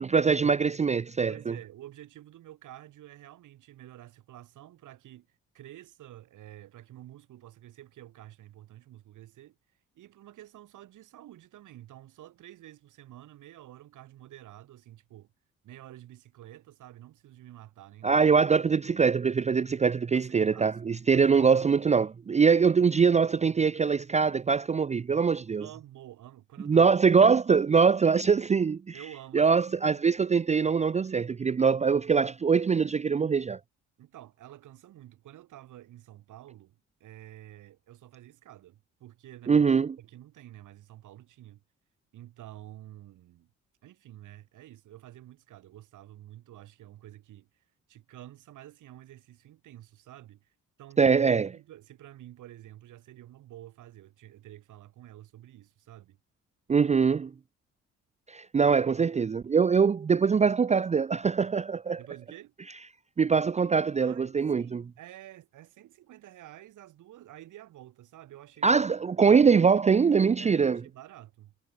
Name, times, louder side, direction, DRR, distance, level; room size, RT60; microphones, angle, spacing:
voice 1, 0.0-1.5 18.0-25.6 26.7-28.8 29.3-33.6 39.5-39.9 51.0-51.5 56.7-57.3 58.3-62.0 63.2-64.8 68.6-70.8, right 5 dB, 25° right, 0.5 m, -23 dB
voice 2, 1.3-9.6 9.9-15.3 15.6-18.3 20.1-20.8 21.1-21.4 25.6-27.3 28.9-30.0 34.0-41.6 42.1-43.5 43.8-47.6 47.9-50.5 50.8-51.2 51.4-56.2 62.0-62.5 64.0-68.8 69.2-69.3 70.4-71.5, right 13 dB, 80° right, 5.7 m, -49 dB
cardioid pair, 90°, 30 cm